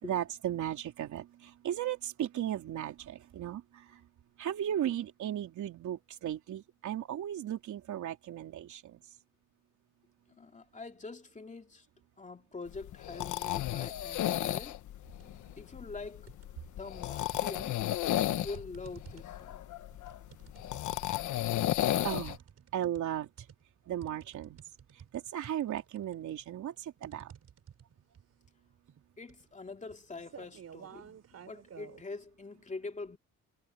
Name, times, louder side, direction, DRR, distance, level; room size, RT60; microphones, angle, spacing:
voice 1, 0.0-4.1 4.4-9.0 22.0-22.4 22.7-23.5 23.9-24.6 24.9-27.3, right 11 dB, 75° right, 3.6 m, -36 dB
voice 2, 10.3-11.9 12.2-14.8 15.6-16.3 16.6-17.8 18.4-19.7 21.6-21.7 29.2-33.2, left 3 dB, 25° left, 2.6 m, -44 dB
Someone Snoring, 12.7-22.4, left 13 dB, 75° left, 1.2 m, -34 dB
sound 1, 15.1-15.5 15.8-16.8 17.3-32.0, right 8 dB, 55° right, 4.1 m, -53 dB
cardioid pair, 90°, 30 cm